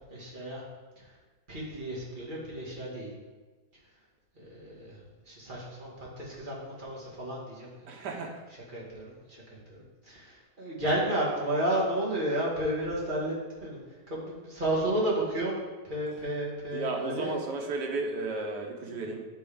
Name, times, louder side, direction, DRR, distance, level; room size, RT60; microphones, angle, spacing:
voice 1, 0.1-0.6 1.0-1.1 1.5-3.1 4.4-5.0 5.3-8.1 8.7-13.4 13.6-13.8 14.1-17.3 18.8-19.0, right 1 dB, 30° right, -6 dB, 2.1 m, -32 dB
voice 2, 7.9-8.4 16.7-19.2, right 3 dB, 90° right, 2 dB, 1.6 m, -33 dB
10.0 x 3.6 x 4.9 m, 1.3 s
omnidirectional pair, 1.7 m